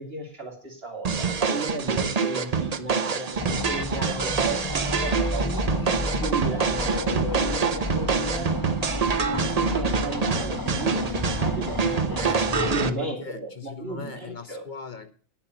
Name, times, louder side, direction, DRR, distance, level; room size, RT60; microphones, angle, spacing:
voice 1, 0.0-5.7 6.2-8.5 9.3-14.6, right 2 dB, 65° right, 1 dB, 3.3 m, -34 dB
sound 1, 1.0-12.9, right 5 dB, 40° right, 0.8 m, -26 dB
sound 2, 3.4-12.9, left 1 dB, 20° left, 0.9 m, -31 dB
voice 2, 5.8-6.2 12.2-15.1, left 4 dB, 50° left, 9 dB, 1.1 m, -40 dB
9.9 x 7.5 x 8.0 m, 0.43 s
omnidirectional pair, 1.1 m